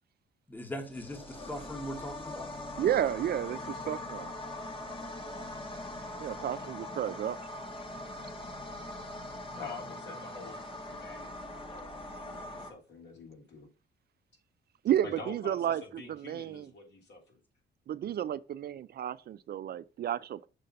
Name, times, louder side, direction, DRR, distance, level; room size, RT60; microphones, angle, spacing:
voice 1, 0.5-2.5, equal, 10° left, 1.3 m, -40 dB
sound 1, 0.8-12.7, left 1 dB, 25° left, 1.5 m, -42 dB
voice 2, 2.8-4.3 6.2-7.4 14.8-16.7 17.9-20.5, right 10 dB, 50° right, 0.4 m, -32 dB
voice 3, 9.5-10.6 10.9-13.7 15.0-17.4, left 4 dB, 60° left, 3.0 m, -47 dB
6.6 x 3.8 x 5.3 m
cardioid pair, 90°, 20 cm